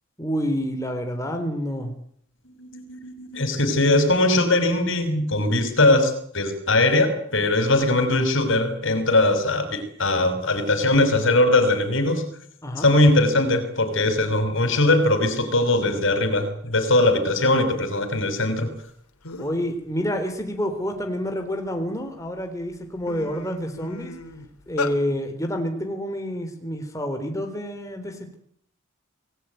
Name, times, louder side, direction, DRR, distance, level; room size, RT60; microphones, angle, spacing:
voice 1, 0.2-1.9 12.6-12.9 19.4-24.1 24.7-28.4, equal, 15° left, 5 dB, 3.8 m, -28 dB
voice 2, 2.6-12.2 12.8-18.7, left 2 dB, 55° left, 9 dB, 6.0 m, -20 dB
sound 1, 18.9-19.0 19.2-19.7 20.1-21.7 22.3-22.4 22.7-25.0, left 3 dB, 85° left, 3.4 m, -34 dB
28.0 x 20.0 x 9.4 m, 0.66 s
head